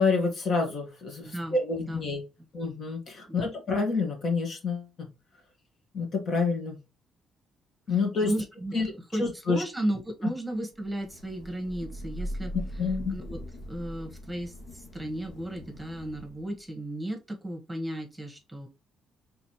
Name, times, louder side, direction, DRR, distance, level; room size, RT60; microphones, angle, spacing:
voice 1, 0.0-2.2 2.5-5.1 5.9-6.8 7.9-8.3 8.7-8.9 9.2-9.6 12.8-13.2, left 4 dB, 55° left, 3 dB, 1.7 m, -28 dB
voice 2, 1.2-2.0 2.4-2.5 3.3-3.5 8.2-8.7 9.1-12.8 13.1-13.4 13.7-18.7, right 1 dB, 10° right, 3 dB, 1.3 m, -34 dB
Thunder / Rain, 10.8-16.6, equal, 80° left, 1.2 m, -40 dB
4.0 x 3.5 x 3.2 m, 0.25 s
cardioid pair, 90°, 0 cm